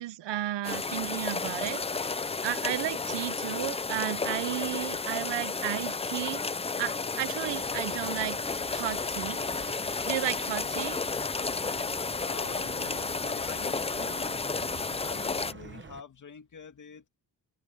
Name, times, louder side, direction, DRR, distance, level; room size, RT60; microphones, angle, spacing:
voice 1, 0.0-6.4 6.8-8.4 8.7-9.4 10.0-11.0, right 13 dB, 90° right, 0.9 m, -33 dB
sound 1, 0.6-15.5, left 4 dB, 15° left, 0.5 m, -32 dB
sound 2, 7.4-16.0, right 6 dB, 30° right, 1.0 m, -47 dB
voice 2, 12.2-14.4 15.0-17.1, left 6 dB, 45° left, 2.6 m, -45 dB
open air
wide cardioid pair, 140°, 41 cm